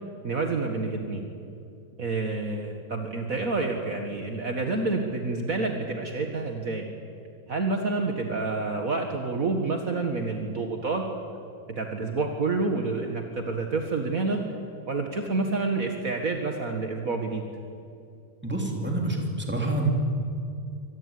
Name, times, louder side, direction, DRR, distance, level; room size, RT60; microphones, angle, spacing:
voice 1, 0.2-1.2 2.0-6.9 7.5-11.0 11.7-14.4 14.9-17.4, right 3 dB, 55° right, 3 dB, 0.9 m, -28 dB
voice 2, 18.4-19.9, right 2 dB, 5° right, 1 dB, 2.8 m, -27 dB
25.0 x 18.5 x 9.7 m, 2.6 s
omnidirectional pair, 4.3 m